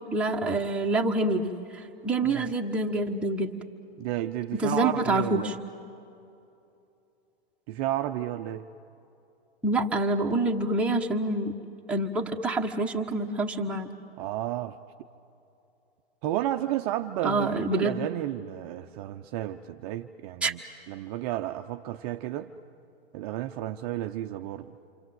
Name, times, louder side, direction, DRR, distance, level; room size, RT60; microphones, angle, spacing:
voice 1, 0.1-3.5 4.6-5.5 9.6-11.5 11.9-13.9 17.2-18.0 20.4-20.5, right 2 dB, 5° right, -1 dB, 1.3 m, -27 dB
voice 2, 4.0-5.6 7.7-8.6 14.2-14.8 16.2-22.5 23.1-24.7, right 13 dB, 35° right, 5 dB, 0.7 m, -32 dB
28.5 x 25.0 x 7.8 m, 2.8 s
hypercardioid pair, 130°, 31 cm